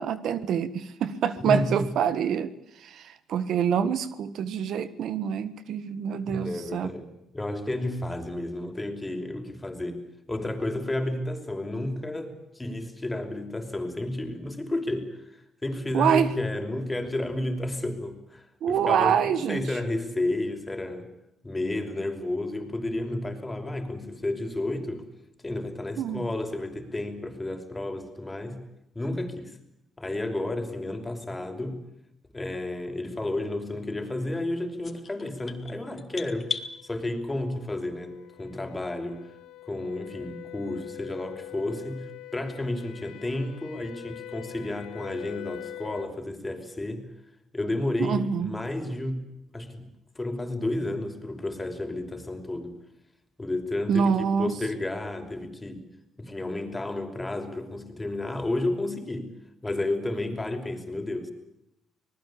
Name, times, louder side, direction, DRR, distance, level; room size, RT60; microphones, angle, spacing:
voice 1, 0.0-2.5 2.8-6.9 15.9-16.3 18.6-19.6 26.0-26.2 48.0-48.5 53.9-54.5, right 7 dB, 75° right, 14 dB, 1.5 m, -26 dB
voice 2, 1.4-1.9 6.1-7.1 7.3-10.0 10.3-21.1 21.4-25.1 25.4-28.6 28.9-29.6 30.0-31.8 32.3-36.5 36.8-39.2 39.7-47.0 47.5-49.2 49.5-49.9 50.2-52.7 53.4-55.8 56.2-59.3 59.6-61.3, left 1 dB, 15° left, 6 dB, 5.5 m, -31 dB
sound 1, 34.8-36.7, left 5 dB, 40° left, 3.1 m, -36 dB
sound 2, 36.3-46.2, left 16 dB, 85° left, 1.3 m, -45 dB
26.0 x 20.0 x 8.6 m, 0.84 s
cardioid pair, 90°, 0 cm